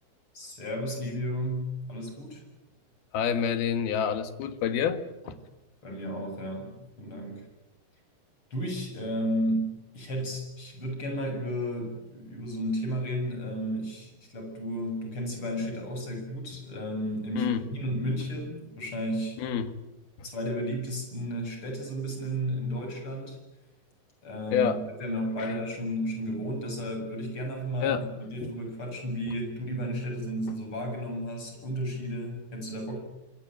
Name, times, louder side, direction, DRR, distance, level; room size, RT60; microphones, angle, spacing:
voice 1, 0.3-2.4 5.8-7.4 8.5-19.4 20.2-23.4 24.2-24.7 25.0-33.0, equal, 35° left, 3 dB, 8.4 m, -33 dB
voice 2, 3.1-5.4 17.4-17.6 19.4-19.8 24.5-24.8 25.4-25.5 27.8-28.1 28.4-28.6, left 8 dB, 75° left, 11 dB, 3.6 m, -28 dB
26.5 x 22.0 x 9.3 m, 0.96 s
omnidirectional pair, 4.4 m